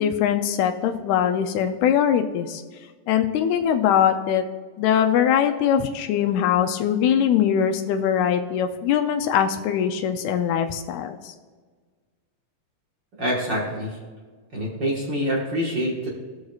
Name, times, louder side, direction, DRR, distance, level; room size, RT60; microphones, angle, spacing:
voice 1, 0.0-2.6 3.1-4.4 4.8-11.3, left 9 dB, 85° left, 6 dB, 1.6 m, -22 dB
voice 2, 13.2-14.0 14.5-16.1, equal, 50° right, -4 dB, 1.4 m, -26 dB
17.5 x 6.4 x 2.4 m, 1.5 s
omnidirectional pair, 3.9 m